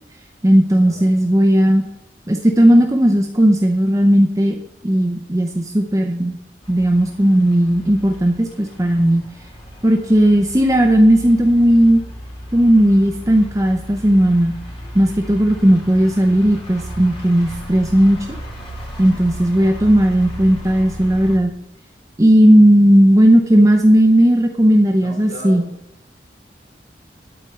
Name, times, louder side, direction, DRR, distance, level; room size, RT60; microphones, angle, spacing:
voice 1, 0.4-1.8 2.3-4.6 4.8-6.4 6.7-9.3 9.8-12.0 12.5-14.6 14.9-18.2 19.0-21.5 22.2-25.7, equal, 20° right, 3 dB, 0.7 m, -14 dB
sound 1, 6.6-21.4, equal, 30° left, 2.1 m, -35 dB
voice 2, 19.5-20.1 24.2-24.3 25.0-25.7, left 2 dB, 90° left, 1 dB, 4.1 m, -38 dB
11.5 x 4.5 x 6.7 m, 0.82 s
head